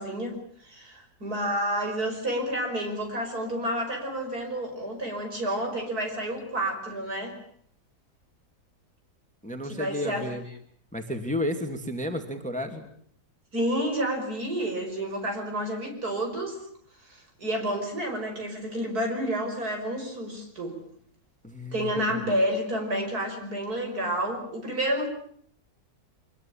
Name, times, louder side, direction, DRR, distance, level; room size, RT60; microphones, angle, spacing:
voice 1, 0.0-7.4 9.6-10.3 13.5-16.6 17.0-20.7 21.7-25.1, right 1 dB, 55° right, 4 dB, 6.0 m, -30 dB
voice 2, 9.4-10.4 10.9-12.9 21.4-22.1, left 1 dB, 5° left, 6 dB, 2.3 m, -32 dB
25.0 x 21.5 x 8.6 m, 0.62 s
omnidirectional pair, 1.9 m